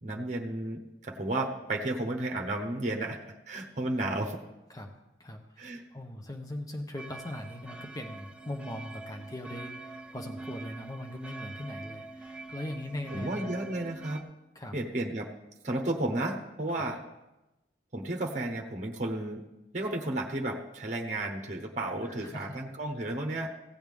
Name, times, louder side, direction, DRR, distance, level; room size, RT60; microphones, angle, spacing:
voice 1, 0.0-3.2 3.5-4.4 5.6-5.8 13.1-14.2 14.7-15.3 15.6-17.0 17.9-19.5 19.7-23.5, right 1 dB, 40° right, 2 dB, 1.0 m, -33 dB
voice 2, 5.2-13.5 14.5-14.8 16.8-16.9 22.0-22.6, left 1 dB, 20° left, 4 dB, 0.9 m, -40 dB
sound 1, 7.0-14.2, right 2 dB, 5° right, 0.4 m, -45 dB
16.0 x 8.0 x 3.5 m, 0.99 s
head